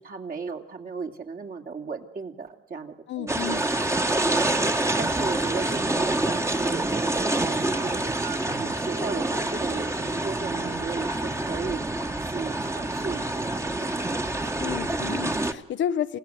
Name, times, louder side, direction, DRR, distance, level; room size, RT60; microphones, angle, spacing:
voice 1, 0.0-3.6 4.1-4.7 5.0-14.5, right 4 dB, 45° right, 2.9 m, -36 dB
voice 2, 3.1-3.6 14.6-16.2, left 10 dB, 70° left, 0.8 m, -31 dB
sound 1, 3.3-15.5, right 2 dB, 15° right, 1.5 m, -27 dB
sound 2, 5.6-10.8, right 7 dB, 75° right, 5.6 m, -41 dB
27.5 x 16.0 x 7.8 m
cardioid pair, 90°, 20 cm